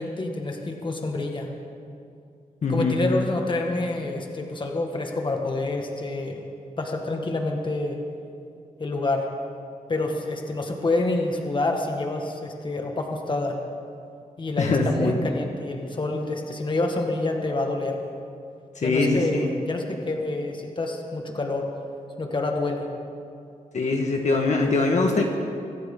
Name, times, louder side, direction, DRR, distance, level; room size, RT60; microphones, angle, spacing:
voice 1, 0.0-1.5 2.7-6.5 6.8-8.0 8.8-9.3 9.9-13.6 14.4-18.0 18.8-21.7 22.2-22.9, left 2 dB, 35° left, 2 dB, 1.7 m, -27 dB
voice 2, 2.6-3.0 14.6-15.1 18.7-19.5 23.7-25.3, left 3 dB, 55° left, 1 dB, 1.6 m, -22 dB
25.0 x 13.5 x 3.9 m, 2.5 s
wide cardioid pair, 120°, 14 cm